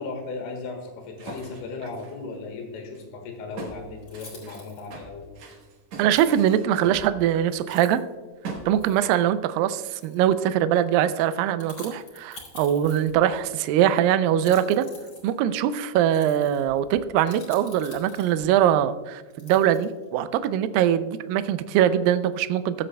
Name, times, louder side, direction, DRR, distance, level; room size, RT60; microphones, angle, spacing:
voice 1, 0.0-5.3, left 3 dB, 80° left, 3 dB, 3.5 m, -36 dB
sound 1, 1.2-2.2 2.9-3.0 3.6-7.7 8.4-8.9, right 3 dB, 60° right, 1.9 m, -40 dB
sound 2, 3.5-3.6 4.0-4.9 6.1-6.5 7.2-7.3 7.6-8.1 8.7-9.2 9.8-10.3 11.3-13.4 14.3-18.5 19.3-20.1, left 3 dB, 40° left, 3.1 m, -47 dB
voice 2, 6.0-8.0 8.7-14.9 15.2-22.9, right 10 dB, 85° right, 12 dB, 2.0 m, -22 dB
19.5 x 7.6 x 2.2 m, 1.3 s
omnidirectional pair, 4.5 m